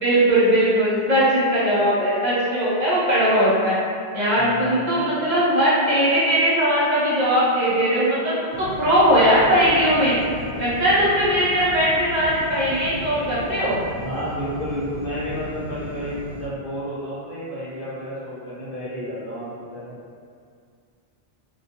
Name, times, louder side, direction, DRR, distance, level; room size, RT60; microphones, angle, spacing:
voice 1, 0.0-3.8 4.1-10.1 10.6-13.8, equal, 55° right, -9 dB, 0.6 m, -19 dB
voice 2, 4.4-5.0 14.0-20.0, equal, 60° left, -8 dB, 0.8 m, -31 dB
sound 1, 8.5-16.5, equal, 80° right, 0.9 m, -36 dB
2.2 x 2.2 x 2.7 m, 2.2 s
omnidirectional pair, 1.0 m